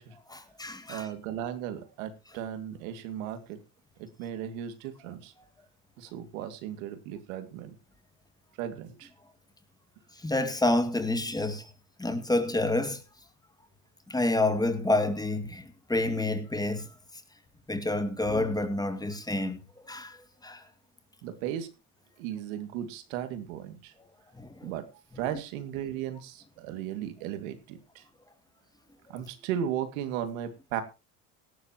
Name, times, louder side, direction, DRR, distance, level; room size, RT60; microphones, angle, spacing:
voice 1, 0.3-1.1 10.2-11.7 12.0-13.0 14.1-16.9 17.7-19.6 19.8-20.6 24.4-24.7, left 2 dB, 10° left, 2.2 m, -28 dB
voice 2, 0.9-3.6 4.0-5.3 6.0-7.8 8.6-9.1 21.2-21.7 22.2-23.9 24.6-24.8 25.2-28.0 29.1-30.8, right 10 dB, 85° right, 2.4 m, -36 dB
17.5 x 12.5 x 3.0 m
supercardioid pair, 105°, 40 cm